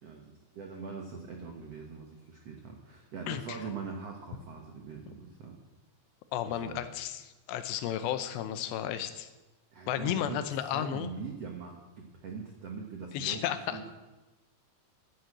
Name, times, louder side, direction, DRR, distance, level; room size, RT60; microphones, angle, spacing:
voice 1, 0.0-5.5 6.4-6.9 9.7-10.4 10.7-13.9, right 5 dB, 80° right, 1 dB, 1.4 m, -42 dB
voice 2, 3.3-3.6 6.3-9.3 9.9-11.1 13.1-13.8, left 11 dB, 80° left, 10 dB, 2.9 m, -33 dB
10.5 x 10.0 x 7.8 m, 1.1 s
omnidirectional pair, 5.0 m